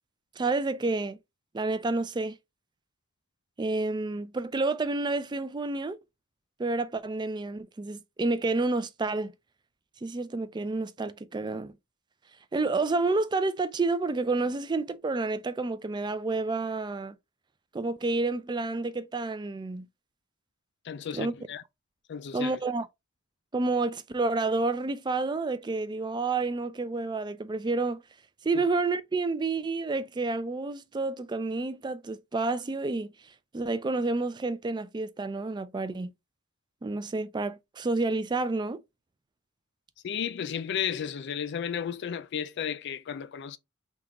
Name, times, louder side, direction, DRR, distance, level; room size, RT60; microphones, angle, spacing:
voice 1, 0.4-1.2 1.5-2.4 3.6-6.0 6.6-9.3 10.0-11.7 12.5-17.2 17.7-19.9 21.1-21.3 22.3-22.9 23.5-28.0 28.4-33.1 33.5-36.1 36.8-38.8, right 3 dB, 20° right, 0.4 m, -29 dB
voice 2, 20.8-21.6 22.1-22.6 28.5-28.6 40.0-43.6, left 8 dB, 60° left, 0.4 m, -33 dB
3.6 x 2.9 x 3.6 m
head